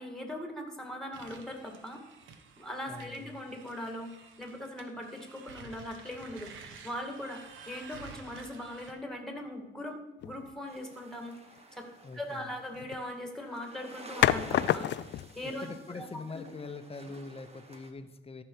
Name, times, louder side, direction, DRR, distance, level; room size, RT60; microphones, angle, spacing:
voice 1, 0.0-2.0 2.6-4.1 4.4-7.4 7.7-10.0 10.2-11.3 11.7-11.9 12.1-15.0 15.4-16.1, left 1 dB, 5° left, 4 dB, 2.2 m, -40 dB
sound 1, 1.1-8.9, right 5 dB, 80° right, 1.2 m, -51 dB
voice 2, 2.9-3.2 12.0-12.5 15.4-18.4, left 3 dB, 30° left, 9 dB, 0.9 m, -43 dB
sound 2, 10.2-10.5 12.7-13.0 14.2-15.4, left 12 dB, 65° left, 0.4 m, -28 dB
sound 3, 10.7-17.9, right 3 dB, 30° right, 1.4 m, -51 dB
14.0 x 5.9 x 4.8 m, 1.1 s
cardioid pair, 90°, 20 cm